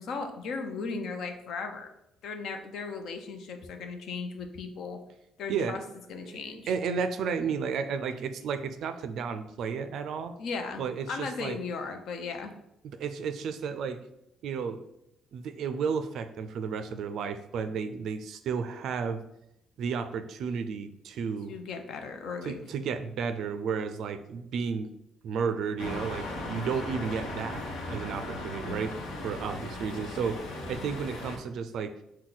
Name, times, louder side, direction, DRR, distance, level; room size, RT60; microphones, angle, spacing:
voice 1, 0.0-1.9 2.2-5.0 5.4-5.8 6.1-6.7 10.4-10.8 11.1-12.5 21.5-22.6 28.3-28.8, left 4 dB, 60° left, 6 dB, 0.6 m, -36 dB
voice 2, 6.1-10.3 10.8-11.6 12.9-14.0 14.4-14.8 15.3-19.2 19.8-21.5 22.4-24.9 25.2-28.9 29.2-32.0, right 6 dB, 60° right, 9 dB, 0.4 m, -33 dB
sound 1, 25.8-31.4, left 2 dB, 80° left, 0.9 m, -37 dB
6.1 x 2.2 x 3.9 m, 0.83 s
cardioid pair, 170°, 0 cm